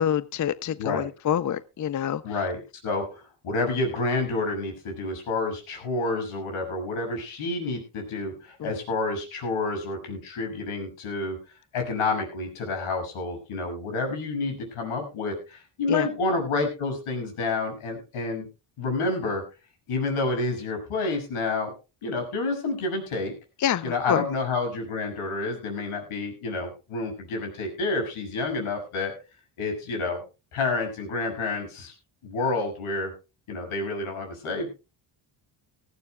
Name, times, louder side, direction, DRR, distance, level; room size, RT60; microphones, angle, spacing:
voice 1, 0.0-2.3 8.6-8.7 15.9-16.1 23.6-24.2, left 9 dB, 40° left, 0.6 m, -26 dB
voice 2, 2.2-11.4 11.7-18.5 18.8-19.4 19.9-21.7 22.0-23.3 23.8-29.1 29.6-30.2 30.5-31.9 32.2-33.1 33.5-34.7, left 3 dB, 85° left, 6.5 m, -29 dB
19.0 x 15.0 x 2.2 m
cardioid pair, 105°, 49 cm